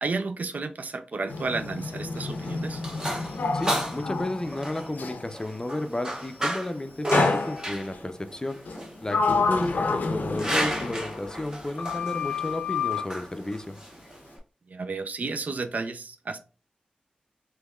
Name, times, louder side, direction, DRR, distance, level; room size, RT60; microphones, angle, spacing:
voice 1, 0.0-2.8 14.7-16.4, right 3 dB, 60° right, 9 dB, 0.4 m, -32 dB
Sliding door, 1.3-5.3 7.1-8.0 8.7-11.5 11.8-13.1, left 4 dB, 75° left, 0.5 m, -29 dB
sound 1, 2.1-14.4, right 1 dB, 25° right, 0.9 m, -33 dB
voice 2, 3.5-8.6 9.0-13.8, left 1 dB, 25° left, 9 dB, 0.5 m, -32 dB
3.3 x 3.0 x 2.3 m, 0.35 s
cardioid pair, 45°, 3 cm